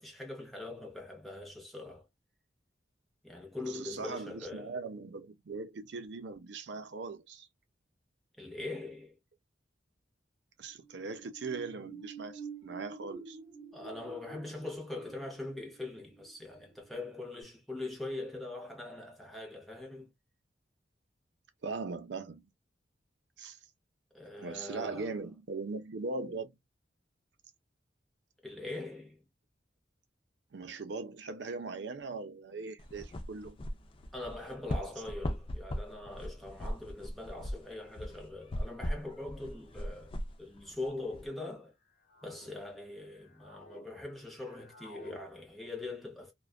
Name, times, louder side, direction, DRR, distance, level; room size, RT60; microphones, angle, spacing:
voice 1, 0.0-2.0 3.2-4.7 8.4-9.2 13.7-20.1 24.1-25.2 28.4-29.2 34.1-40.1 40.4-41.7 42.2-46.3, left 2 dB, ahead, 0.7 m, -42 dB
voice 2, 3.6-7.5 10.6-13.4 21.6-22.5 23.4-23.6 24.4-26.5 30.5-33.6, right 4 dB, 70° right, 0.5 m, -40 dB
sound 1, 10.7-17.0 17.4-17.5, right 5 dB, 35° right, 1.0 m, -49 dB
sound 2, 32.8-41.3, left 1 dB, 30° left, 0.3 m, -39 dB
sound 3, 37.1-37.2 38.3-38.5 39.5-39.9 40.7-41.2 41.8-42.5 43.0-43.9 44.1-45.2, left 1 dB, 45° left, 0.8 m, -55 dB
2.4 x 2.2 x 2.3 m
head